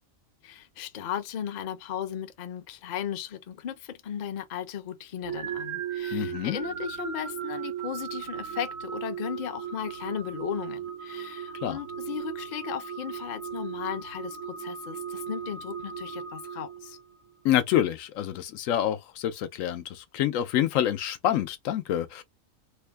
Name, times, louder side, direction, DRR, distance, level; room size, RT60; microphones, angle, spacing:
voice 1, 0.4-17.0, left 9 dB, 50° left, 0.5 m, -36 dB
sound 1, 5.2-17.2, right 8 dB, 85° right, 1.4 m, -37 dB
voice 2, 6.1-6.6 11.6-11.8 17.4-22.2, left 11 dB, 85° left, 1.0 m, -27 dB
3.4 x 2.1 x 3.3 m
omnidirectional pair, 1.3 m